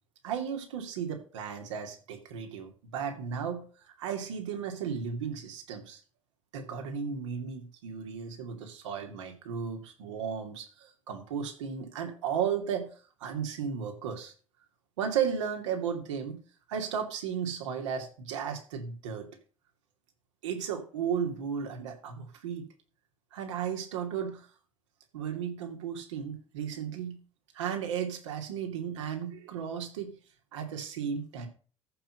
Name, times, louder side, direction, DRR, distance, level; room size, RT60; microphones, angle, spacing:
voice 1, 0.2-3.7 4.0-6.0 6.5-12.9 13.2-14.3 15.0-16.4 16.7-19.3 20.4-22.7 23.3-24.5 25.1-27.2 27.5-30.1 30.5-31.5, right 7 dB, 70° right, 4 dB, 2.6 m, -34 dB
14.0 x 6.0 x 5.5 m, 0.39 s
figure-of-eight pair, 60°, 16 cm